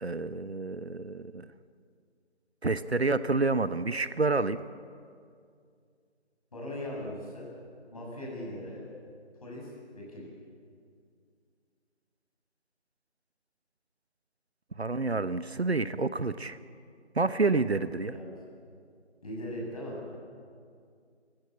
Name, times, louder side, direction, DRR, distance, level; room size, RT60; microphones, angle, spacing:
voice 1, 0.0-1.5 2.6-4.6 14.8-16.6 17.1-18.1, right 3 dB, 65° right, 14 dB, 0.9 m, -28 dB
voice 2, 6.5-7.5 7.9-8.8 9.4-10.3 18.1-18.3 19.2-20.1, left 1 dB, 30° left, -3 dB, 7.1 m, -39 dB
26.0 x 16.0 x 8.6 m, 2.2 s
figure-of-eight pair, 165°, 34 cm